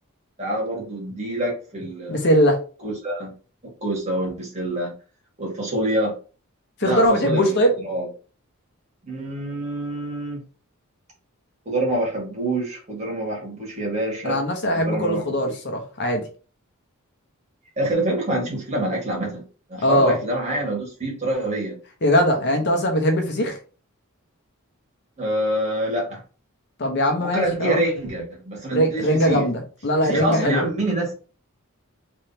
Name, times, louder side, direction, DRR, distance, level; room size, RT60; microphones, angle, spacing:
voice 1, 0.4-2.2 2.8-3.3 3.6-4.9 5.4-6.2 6.8-7.6 7.8-8.1 9.0-10.4 11.7-14.4 14.7-15.5 17.8-19.4 19.7-21.8 25.2-26.2 27.2-29.5 30.0-31.1, right 1 dB, 30° right, 1.8 m, -26 dB
voice 2, 2.1-2.6 6.8-7.7 14.2-16.3 19.8-20.2 22.0-23.6 26.8-27.8 28.7-30.7, equal, 55° left, 0.9 m, -20 dB
3.6 x 3.2 x 2.8 m
head